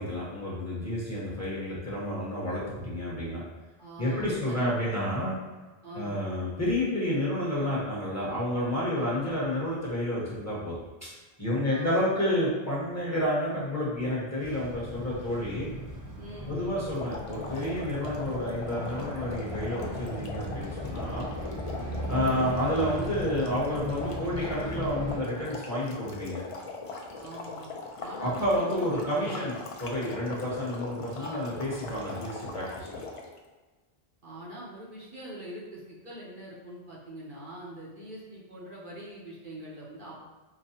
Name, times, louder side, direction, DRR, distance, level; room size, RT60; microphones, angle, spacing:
voice 1, 0.0-3.4 4.0-5.4 5.9-10.7 11.0-11.1 11.4-15.7 16.5-21.3 22.1-26.4 28.2-33.0, equal, 15° left, -8 dB, 1.0 m, -30 dB
voice 2, 3.8-4.7 5.8-6.2 8.9-9.2 11.7-12.1 16.2-16.8 27.2-27.7 28.0-29.5 31.2-31.5 34.2-40.2, right 1 dB, 60° right, -5 dB, 0.8 m, -43 dB
sound 1, 14.4-25.2, equal, 25° right, 0.4 m, -37 dB
sound 2, 17.0-33.4, left 4 dB, 55° left, 0.3 m, -40 dB
4.8 x 2.1 x 2.8 m, 1.3 s
omnidirectional pair, 1.0 m